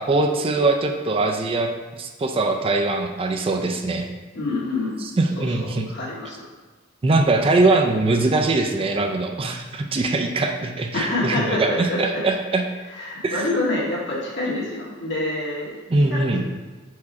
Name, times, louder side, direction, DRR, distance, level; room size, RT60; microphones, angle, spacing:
voice 1, 0.0-4.1 5.0-5.9 7.0-12.6 13.2-13.4 15.9-16.4, right 2 dB, 30° right, 4 dB, 0.4 m, -22 dB
voice 2, 4.3-5.0 5.4-6.4 10.9-12.2 13.0-16.2, left 2 dB, 60° left, -5 dB, 1.7 m, -27 dB
4.7 x 4.7 x 4.2 m, 1.3 s
head